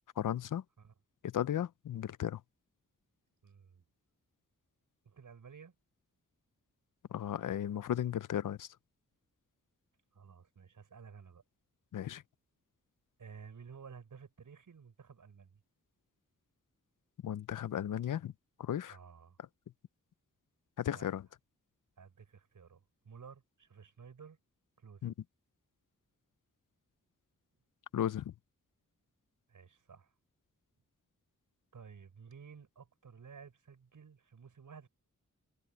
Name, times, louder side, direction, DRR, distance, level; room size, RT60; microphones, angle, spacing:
voice 1, 0.2-0.6 1.2-2.4 7.1-8.7 11.9-12.2 17.2-18.3 18.6-19.0 20.8-21.2 25.0-25.1 27.9-28.3, left 10 dB, 90° left, 0.6 m, -35 dB
voice 2, 3.4-3.8 5.0-5.7 10.1-11.4 13.2-15.6 18.9-19.4 20.9-21.1 22.0-24.4 24.8-25.1 29.5-30.1 31.7-34.9, right 6 dB, 85° right, 5.5 m, -54 dB
wide cardioid pair, 130°, 31 cm